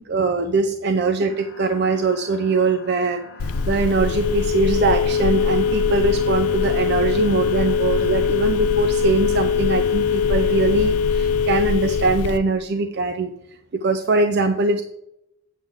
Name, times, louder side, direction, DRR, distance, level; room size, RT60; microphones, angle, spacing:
voice 1, 0.0-3.2 3.6-13.3 13.7-14.8, right 3 dB, 50° right, 7 dB, 0.5 m, -22 dB
sound 1, 1.3-11.5, left 3 dB, 50° left, 0.8 m, -40 dB
Telephone, 3.4-12.4, left 6 dB, 90° left, 0.4 m, -21 dB
8.3 x 7.3 x 3.6 m, 0.81 s
head